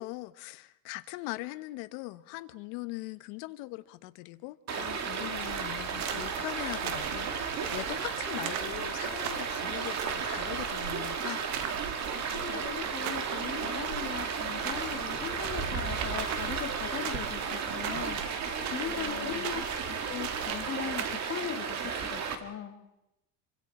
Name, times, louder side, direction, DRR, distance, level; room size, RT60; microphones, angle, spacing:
voice 1, 0.0-11.4 18.8-19.6, left 19 dB, 85° left, 13 dB, 1.2 m, -41 dB
Stream, 4.7-22.4, right 6 dB, 35° right, 2.1 m, -34 dB
sound 1, 5.4-21.2, right 9 dB, 60° right, 1.7 m, -41 dB
voice 2, 12.3-18.2 18.7-22.7, left 8 dB, 30° left, 3 dB, 2.6 m, -39 dB
29.0 x 24.5 x 4.3 m, 0.91 s
cardioid pair, 150°, 44 cm